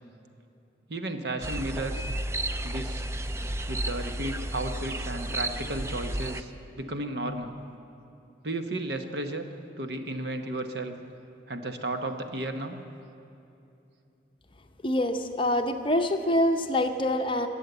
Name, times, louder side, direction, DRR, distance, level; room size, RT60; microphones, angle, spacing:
voice 1, 0.9-2.1 2.6-3.1 3.7-7.6 8.4-9.5 9.8-10.9 11.5-12.8, right 2 dB, 60° right, 6 dB, 1.0 m, -33 dB
sound 1, 1.4-6.4, right 1 dB, 15° right, 0.4 m, -32 dB
voice 2, 14.8-17.5, left 1 dB, 25° left, 6 dB, 0.7 m, -25 dB
21.5 x 8.3 x 8.0 m, 2.7 s
head